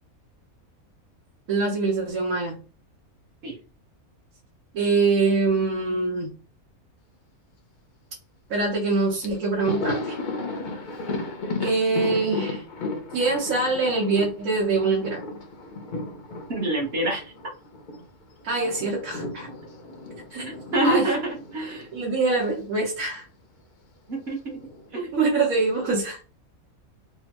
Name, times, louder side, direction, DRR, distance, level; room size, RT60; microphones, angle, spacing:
voice 1, 1.5-2.6 4.7-6.3 8.5-10.2 11.6-12.6 13.1-15.2 18.4-19.5 20.3-20.5 20.8-21.1 21.9-23.2 25.1-26.2, right 3 dB, 75° right, -4 dB, 1.4 m, -24 dB
Thunder, 8.9-9.0 9.2-18.0 18.3-22.6 22.9-23.0 24.2-24.9, left 3 dB, 50° left, 0.6 m, -34 dB
voice 2, 16.5-17.2 20.4-21.9 24.1-24.6 24.9-25.2, right 2 dB, 45° right, -1 dB, 1.3 m, -26 dB
3.5 x 2.1 x 2.9 m, 0.35 s
omnidirectional pair, 1.5 m